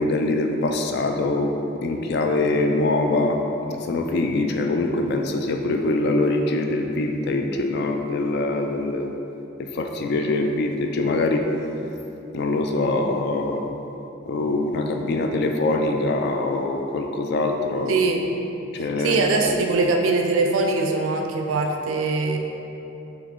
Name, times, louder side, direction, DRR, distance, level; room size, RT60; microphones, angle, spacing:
voice 1, 0.0-9.1 9.6-11.5 12.3-13.6 14.3-17.9 18.7-19.2, left 2 dB, 55° left, 4 dB, 0.3 m, -23 dB
voice 2, 17.9-18.2 19.0-22.4, right 3 dB, 75° right, 2 dB, 0.4 m, -22 dB
3.7 x 3.0 x 3.6 m, 3.0 s
head